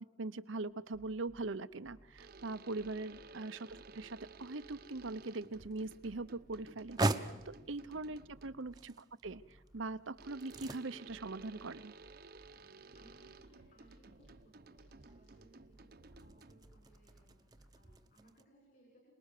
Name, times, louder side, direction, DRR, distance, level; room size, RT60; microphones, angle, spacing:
voice 1, 0.2-11.9, right 3 dB, 85° right, 13 dB, 0.9 m, -42 dB
sound 1, 0.7-1.4 1.8-3.3 3.7-5.1 5.5-7.0 7.4-8.8 9.2-10.6 11.1-12.5 12.9-14.3 14.8-16.2 16.6-18.0, right 1 dB, 85° left, 6.9 m, -62 dB
sound 2, 2.2-8.8 10.2-16.8, right 3 dB, 50° right, 0.9 m, -56 dB
sound 3, 5.2-18.4, right 2 dB, 20° right, 0.9 m, -44 dB
voice 2, 12.5-19.1, right 1 dB, 45° left, -2 dB, 6.6 m, -67 dB
27.5 x 20.0 x 6.7 m, 1.1 s
head